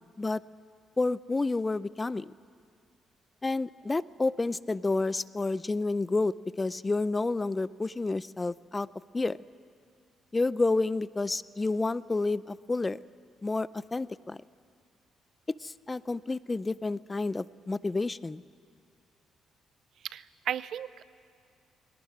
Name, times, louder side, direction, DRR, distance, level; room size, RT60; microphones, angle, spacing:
voice 1, 1.0-2.3 3.4-8.9 9.1-9.4 10.3-13.0 13.4-14.4 15.6-18.4, left 3 dB, 20° left, 18 dB, 0.5 m, -30 dB
voice 2, 20.0-21.0, right 10 dB, 70° right, 17 dB, 0.6 m, -35 dB
22.0 x 18.0 x 9.6 m, 2.3 s
cardioid pair, 90°, 0 cm